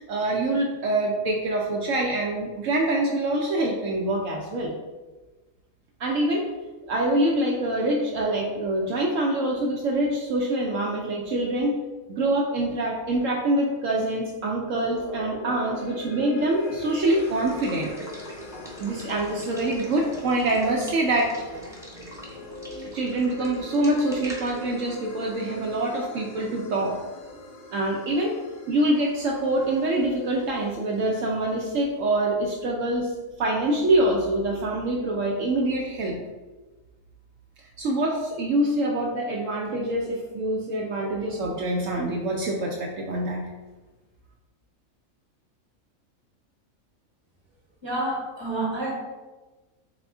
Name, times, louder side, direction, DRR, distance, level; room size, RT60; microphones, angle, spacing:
voice 1, 0.0-4.7 6.0-6.5 6.9-11.7 12.1-17.9 18.8-21.3 22.9-27.0 27.7-28.3 28.7-33.1 33.4-36.2 37.8-43.4, right 1 dB, 70° right, -1 dB, 0.9 m, -25 dB
sound 1, 14.7-31.1, left 2 dB, 85° left, 1.2 m, -42 dB
Water / Water tap faucet / Liquid, 16.6-26.2, equal, 5° right, 0.5 m, -43 dB
voice 2, 47.8-48.9, right 2 dB, 20° right, -3 dB, 1.2 m, -28 dB
4.1 x 3.6 x 3.5 m, 1.2 s
omnidirectional pair, 1.5 m